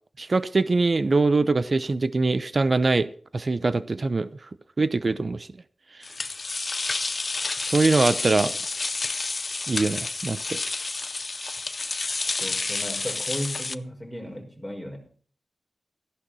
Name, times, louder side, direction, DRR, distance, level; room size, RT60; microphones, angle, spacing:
voice 1, 0.2-4.3 4.8-5.5 7.6-8.6 9.7-10.6, right 3 dB, 45° right, 0.8 m, -23 dB
sound 1, 6.0-13.7, left 3 dB, 45° left, 0.6 m, -30 dB
voice 2, 12.4-15.2, equal, ahead, 5.5 m, -35 dB
15.0 x 11.0 x 4.3 m
wide cardioid pair, 75°, 0 cm